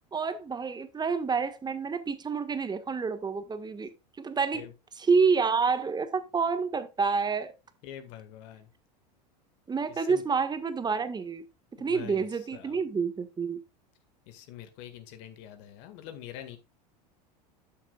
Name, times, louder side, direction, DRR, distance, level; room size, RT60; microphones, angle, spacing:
voice 1, 0.1-3.9 4.2-4.6 5.0-7.5 9.7-11.4 11.8-13.6, right 5 dB, 20° right, 1.4 m, -28 dB
voice 2, 7.8-8.7 9.9-10.2 11.8-12.8 14.3-16.6, left 11 dB, 55° left, 1.8 m, -45 dB
12.0 x 6.5 x 2.3 m
hypercardioid pair, 85°, 21 cm